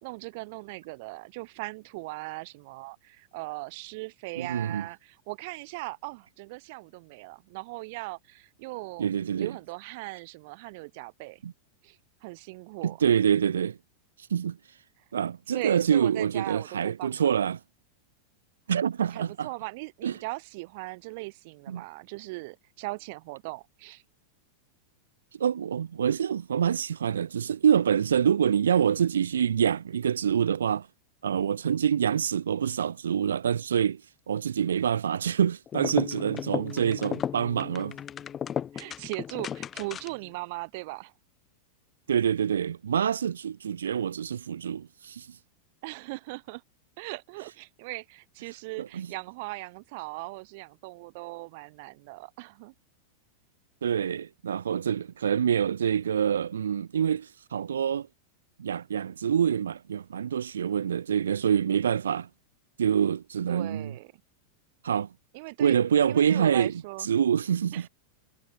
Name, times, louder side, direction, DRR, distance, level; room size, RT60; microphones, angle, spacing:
voice 1, 0.0-9.1 9.4-11.4 11.8-13.0 15.5-17.3 19.1-24.0 38.7-41.1 45.8-46.6 47.0-52.7 63.5-64.1 65.3-65.8 66.1-67.1 67.7-67.9, right 25 dB, 50° right, 1.8 m, -39 dB
voice 2, 4.4-4.9 9.0-9.5 11.4-11.5 12.8-13.8 14.3-14.6 15.1-17.6 18.7-19.5 20.0-20.1 21.7-21.8 25.4-30.9 31.2-34.0 34.3-38.0 42.1-45.3 48.8-49.1 53.8-58.1 58.6-62.3 62.8-63.9 64.8-65.1 65.6-66.7 67.0-67.9, right 8 dB, 65° right, 1.0 m, -26 dB
sound 1, 35.7-40.3, left 9 dB, 25° left, 1.5 m, -35 dB
figure-of-eight pair, 90°, 0 cm